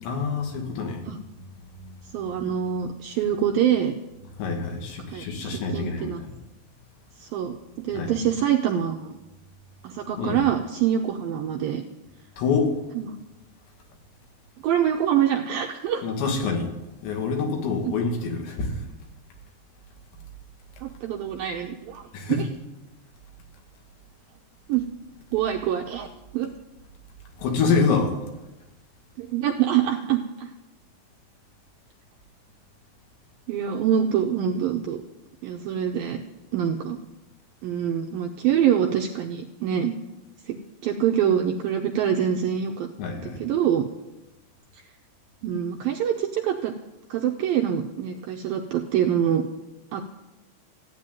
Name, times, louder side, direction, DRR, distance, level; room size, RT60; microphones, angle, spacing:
voice 1, 0.0-1.0 1.8-2.1 4.4-6.3 7.9-8.1 10.2-10.5 12.4-12.8 16.0-16.7 17.0-18.7 22.1-22.4 27.4-28.2 43.0-43.4, left 4 dB, 75° left, 2 dB, 4.4 m, -26 dB
voice 2, 2.1-4.0 5.1-6.2 7.2-7.6 7.8-9.1 9.8-11.9 13.0-13.1 14.6-16.0 17.8-17.9 20.8-22.4 24.7-24.8 25.3-26.1 26.3-26.5 29.2-30.5 33.5-35.0 35.4-36.2 36.5-37.0 37.6-39.9 40.5-40.6 40.8-42.9 43.4-43.9 45.4-46.7 47.1-49.4 49.9-50.2, right 9 dB, 80° right, 3 dB, 2.1 m, -25 dB
15.5 x 9.4 x 9.1 m, 1.0 s
omnidirectional pair, 5.1 m